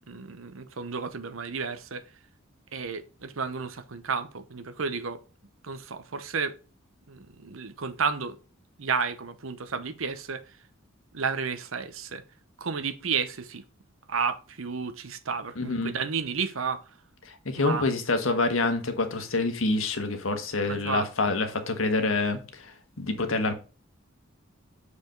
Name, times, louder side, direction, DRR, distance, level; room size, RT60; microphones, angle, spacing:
voice 1, 0.1-2.1 2.7-5.2 5.6-6.6 7.1-8.4 8.8-10.4 11.1-12.2 12.6-13.6 14.1-16.8 17.6-17.9 20.6-21.3, right 5 dB, 80° right, 0.9 m, -32 dB
voice 2, 15.6-15.9 17.4-22.4 23.0-23.5, left 3 dB, 80° left, 1.5 m, -26 dB
7.0 x 5.0 x 3.9 m
head